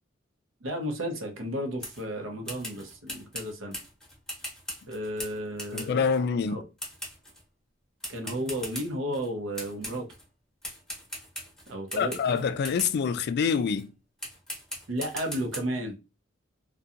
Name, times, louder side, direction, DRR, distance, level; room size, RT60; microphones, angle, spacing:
voice 1, 0.6-3.8 4.9-6.0 6.5-6.6 8.1-10.1 11.7-12.4 14.9-15.9, equal, 70° right, 0.7 m, -33 dB
sound 1, 1.8-2.1 2.5-6.2 6.8-7.4 8.0-9.3 9.6-10.2 10.6-13.0 13.7-13.8 14.2-15.6, equal, 5° left, 0.9 m, -40 dB
voice 2, 5.7-6.6 12.0-13.9, left 6 dB, 55° left, 0.3 m, -26 dB
2.7 x 2.2 x 2.4 m
head